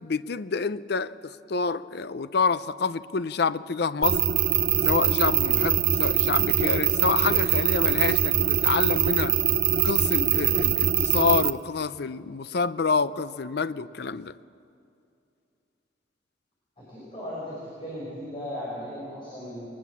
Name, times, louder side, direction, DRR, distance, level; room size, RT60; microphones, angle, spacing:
voice 1, 0.0-4.2 4.8-9.4 9.8-14.3, left 5 dB, 60° left, 0.5 m, -27 dB
sound 1, 4.0-11.5, right 10 dB, 50° right, 0.7 m, -23 dB
voice 2, 16.9-19.7, equal, 30° left, 6.0 m, -36 dB
22.0 x 20.5 x 7.3 m
head